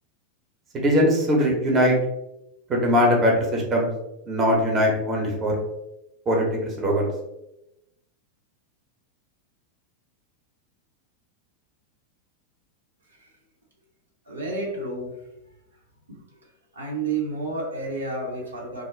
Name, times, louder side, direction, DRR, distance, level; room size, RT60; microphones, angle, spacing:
voice 1, 0.7-1.9 2.7-3.9 4.3-5.6 6.3-7.1, equal, 25° right, -1 dB, 0.7 m, -21 dB
voice 2, 14.3-15.1 16.1-16.2 16.8-18.8, right 3 dB, 75° right, -2 dB, 0.7 m, -30 dB
2.4 x 2.1 x 3.1 m, 0.89 s
figure-of-eight pair, 90°, 0 cm